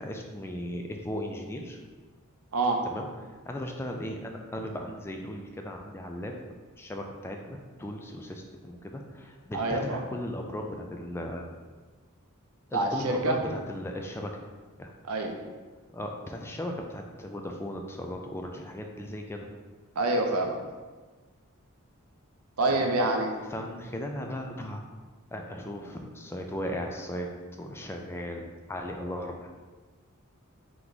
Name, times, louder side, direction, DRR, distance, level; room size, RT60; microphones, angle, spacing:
voice 1, 0.0-1.8 2.8-3.1 3.4-6.4 6.8-11.5 12.7-14.3 14.8-14.9 15.9-19.5 22.7-22.9 23.5-24.8 25.3-27.3 27.6-29.5, left 1 dB, 10° left, 2 dB, 0.3 m, -37 dB
voice 2, 2.5-2.9 9.5-10.0 12.7-13.4 15.1-15.4 20.0-20.6 22.6-23.3, right 2 dB, 85° right, 3 dB, 0.6 m, -26 dB
3.4 x 3.1 x 3.9 m, 1.4 s
head